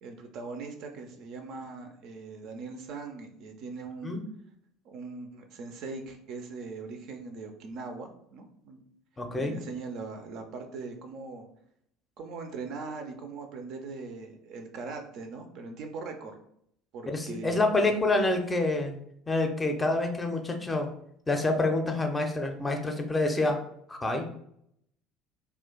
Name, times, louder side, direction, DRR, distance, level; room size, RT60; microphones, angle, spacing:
voice 1, 0.0-4.2 4.8-8.8 9.4-11.5 12.2-16.4 16.9-18.0, right 4 dB, 50° right, 5 dB, 0.4 m, -40 dB
voice 2, 9.2-9.6 17.1-19.0 19.3-20.9 21.3-23.6 23.9-24.3, left 2 dB, 15° left, 4 dB, 0.5 m, -27 dB
2.4 x 2.2 x 3.6 m, 0.71 s
figure-of-eight pair, 60°, 0 cm